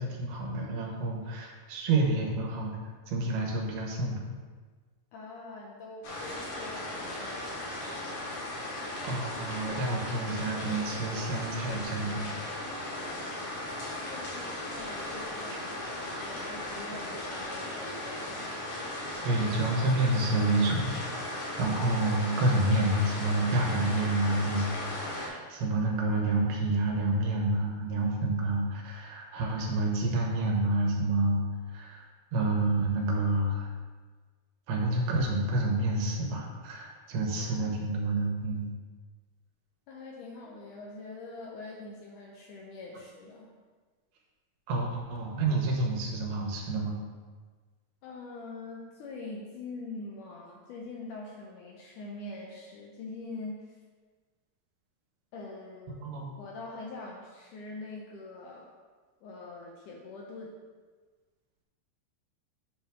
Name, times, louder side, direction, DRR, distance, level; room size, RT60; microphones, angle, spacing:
voice 1, 0.0-2.8 3.1-4.2 9.0-12.3 19.2-31.4 31.7-32.0 32.3-33.7 34.7-38.7 44.7-47.0 56.0-56.3, right 2 dB, 85° right, 0 dB, 3.1 m, -29 dB
voice 2, 5.1-7.5 13.7-18.5 37.4-37.8 39.9-43.5 48.0-53.7 55.3-56.0 56.4-58.7 59.2-60.6, left 3 dB, 80° left, -2 dB, 1.9 m, -44 dB
sound 1, 6.0-25.3, left 1 dB, 55° left, 2.5 m, -37 dB
7.9 x 3.4 x 6.1 m, 1.4 s
omnidirectional pair, 4.4 m